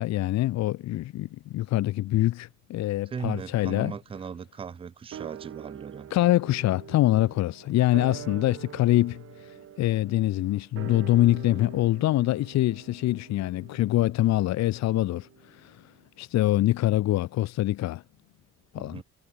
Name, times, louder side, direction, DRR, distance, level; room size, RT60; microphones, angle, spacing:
voice 1, 0.0-3.9 6.1-15.9 16.2-18.0 18.7-19.0, left 15 dB, 60° left, 0.5 m, -25 dB
voice 2, 3.1-6.1 18.8-19.0, right 6 dB, 20° right, 0.3 m, -37 dB
sound 1, 5.1-15.7 16.0-16.1, right 10 dB, 50° right, 1.0 m, -45 dB
cardioid pair, 90°, 30 cm